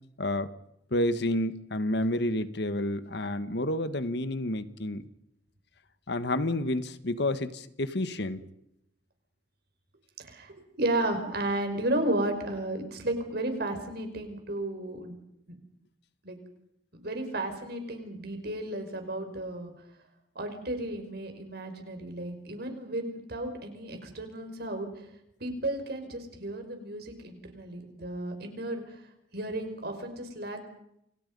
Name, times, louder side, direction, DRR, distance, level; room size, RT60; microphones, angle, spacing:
voice 1, 0.2-0.5 0.9-5.1 6.1-8.4, left 1 dB, 65° left, 12 dB, 1.5 m, -29 dB
voice 2, 10.2-15.2 15.5-15.6 16.2-16.4 17.0-19.7 20.4-25.1 25.4-28.9 29.3-30.6, right 1 dB, 60° right, 6 dB, 5.6 m, -33 dB
29.0 x 27.0 x 5.5 m, 0.78 s
head